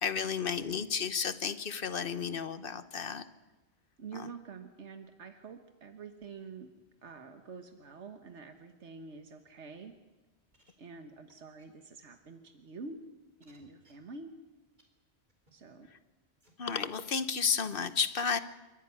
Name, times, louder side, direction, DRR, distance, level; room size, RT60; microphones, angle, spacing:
voice 1, 0.0-3.2 4.1-4.3 16.6-18.4, left 6 dB, 55° left, 13 dB, 1.2 m, -32 dB
voice 2, 4.0-6.7 7.0-10.0 10.8-13.0 13.4-14.3 15.5-15.9, right 4 dB, 90° right, 7 dB, 1.6 m, -47 dB
sound 1, 10.5-10.7 11.3-11.4 11.6-11.7 12.5-12.6 13.4-13.9 14.8-14.9 15.3-15.5 16.4-16.8 17.3-17.4, right 1 dB, 40° right, 4.3 m, -65 dB
27.5 x 13.5 x 9.7 m, 1.2 s
omnidirectional pair, 1.1 m